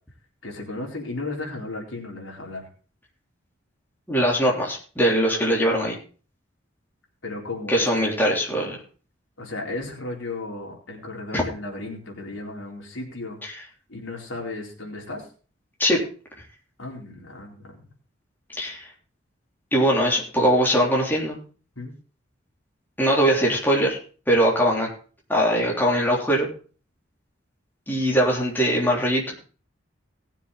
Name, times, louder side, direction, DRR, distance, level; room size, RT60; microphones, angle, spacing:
voice 1, 0.4-2.7 7.2-7.9 9.4-13.4 13.9-15.3 16.8-17.8 21.8-21.9, left 2 dB, 75° left, 0 dB, 4.1 m, -34 dB
voice 2, 4.1-6.0 7.7-8.8 11.3-11.4 13.5-13.6 15.8-16.0 18.6-18.9 19.7-21.4 23.0-24.0 24.3-24.9 25.3-26.5 27.9-29.3, equal, 10° left, -2 dB, 3.5 m, -21 dB
19.0 x 7.3 x 4.1 m, 0.38 s
head